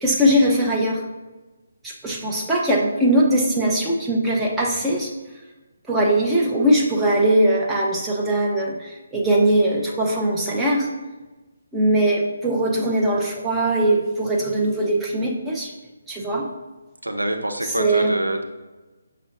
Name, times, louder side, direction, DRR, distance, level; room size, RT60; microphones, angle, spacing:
voice 1, 0.0-1.0 1.8-5.1 5.9-10.9 11.7-15.7 16.1-16.4 17.6-18.1, right 1 dB, 10° right, -3 dB, 0.7 m, -20 dB
voice 2, 17.0-18.4, right 1 dB, 85° right, 5 dB, 0.6 m, -25 dB
6.1 x 2.2 x 3.9 m, 1.2 s
figure-of-eight pair, 145°, 0 cm